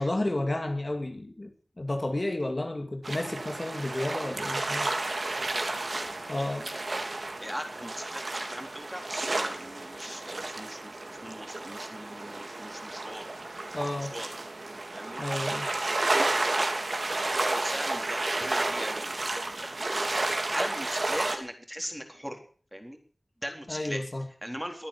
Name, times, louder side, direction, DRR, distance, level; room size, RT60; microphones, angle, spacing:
voice 1, 0.0-1.5 1.8-4.9 6.3-6.7 13.7-14.1 15.2-15.7 23.7-24.2, left 1 dB, 40° left, 4 dB, 2.5 m, -31 dB
sound 1, 3.0-21.4, right 2 dB, 65° right, 3.1 m, -32 dB
voice 2, 5.1-5.6 6.4-6.5 7.4-13.3 14.1-14.3 14.9-15.2 16.9-19.2 19.6-22.4 22.7-23.0 23.4-24.0 24.4-24.9, equal, 5° right, 4 dB, 3.9 m, -40 dB
21.5 x 9.2 x 7.1 m, 0.43 s
wide cardioid pair, 60°, 0 cm